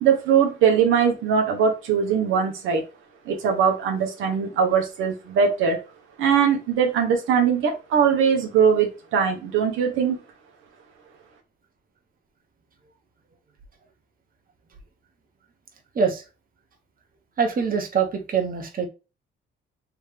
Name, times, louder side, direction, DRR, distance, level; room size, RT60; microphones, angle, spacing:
voice 1, 0.0-2.8 3.3-5.8 6.2-10.2, right 7 dB, 85° right, 1.0 m, -21 dB
voice 2, 17.4-18.9, right 6 dB, 45° right, 1.2 m, -24 dB
3.5 x 3.2 x 3.3 m
cardioid pair, 90°, 20 cm